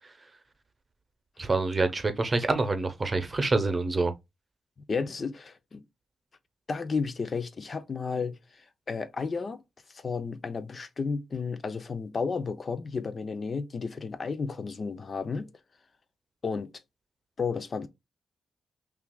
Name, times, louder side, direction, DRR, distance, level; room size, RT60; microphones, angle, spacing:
voice 1, 1.4-4.1, right 3 dB, 35° right, 0.8 m, -26 dB
voice 2, 4.9-5.8 6.7-9.6 9.9-15.5 16.4-16.7 17.4-17.9, left 5 dB, 45° left, 0.5 m, -32 dB
5.6 x 2.5 x 2.2 m
cardioid pair, 70°, 0 cm